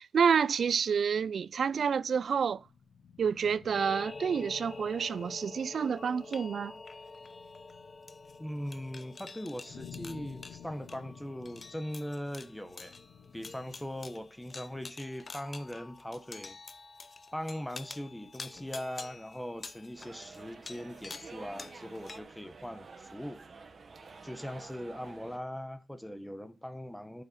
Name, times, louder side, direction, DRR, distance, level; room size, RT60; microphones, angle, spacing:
voice 1, 0.0-2.6 3.2-6.8, right 6 dB, 65° right, 0.4 m, -29 dB
sound 1, 1.6-14.3, left 7 dB, 90° left, 0.8 m, -54 dB
sound 2, 3.7-22.2, left 3 dB, 35° left, 0.7 m, -47 dB
voice 2, 8.4-12.9 13.3-16.6 17.3-23.4 24.2-27.2, equal, 5° left, 1.0 m, -40 dB
sound 3, 20.0-25.4, right 4 dB, 50° right, 1.4 m, -50 dB
8.8 x 7.3 x 4.1 m
wide cardioid pair, 110°, 0 cm